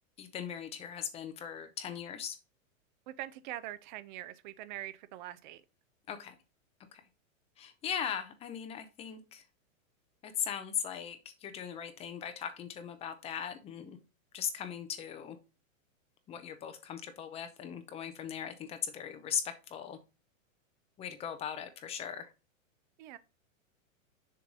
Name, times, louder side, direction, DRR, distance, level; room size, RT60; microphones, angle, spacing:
voice 1, 0.2-2.4 6.1-6.3 6.9-7.0 7.6-9.4 10.2-14.0 14.3-15.4 16.3-20.0 21.0-22.3, left 8 dB, 15° left, 0.7 m, -39 dB
voice 2, 3.1-5.6 23.0-23.2, right 14 dB, 35° right, 0.6 m, -43 dB
6.7 x 3.2 x 5.3 m
supercardioid pair, 150°, 40 cm